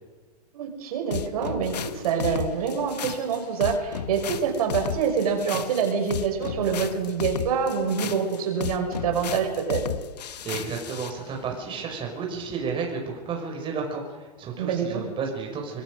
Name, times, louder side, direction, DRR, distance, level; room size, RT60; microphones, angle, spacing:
voice 1, 0.5-9.9 14.6-15.0, right 6 dB, 65° right, 3 dB, 5.9 m, -26 dB
sound 1, 1.1-11.2, left 8 dB, 80° left, 1.4 m, -34 dB
voice 2, 10.4-15.8, right 5 dB, 25° right, 1 dB, 5.5 m, -32 dB
25.5 x 21.0 x 6.4 m, 1.4 s
hypercardioid pair, 130°, 21 cm